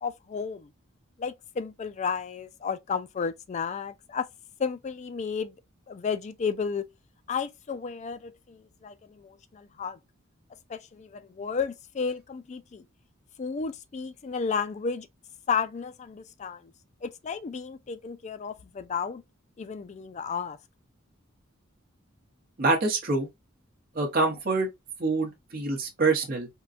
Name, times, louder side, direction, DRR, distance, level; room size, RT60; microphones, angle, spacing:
voice 1, 0.0-0.7 1.2-4.3 4.6-5.5 5.9-6.9 7.3-10.0 10.7-12.9 13.4-15.1 15.5-16.7 17.0-19.2 19.6-20.6, left 6 dB, 35° left, 0.3 m, -33 dB
voice 2, 22.6-23.3 23.9-24.7 25.0-26.5, right 3 dB, 45° right, 0.9 m, -25 dB
3.7 x 2.2 x 2.4 m
head